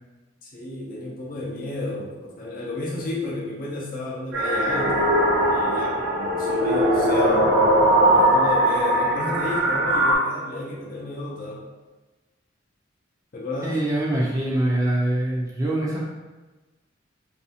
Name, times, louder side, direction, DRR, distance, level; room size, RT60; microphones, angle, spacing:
voice 1, 0.4-5.2 5.5-7.5 8.1-11.6 13.3-13.8, left 2 dB, 45° left, -4 dB, 0.6 m, -32 dB
sound 1, 4.3-10.2, right 1 dB, 65° right, 0.9 m, -20 dB
voice 2, 13.6-16.0, right 1 dB, 15° right, -5 dB, 0.5 m, -24 dB
2.6 x 2.3 x 2.7 m, 1.2 s
head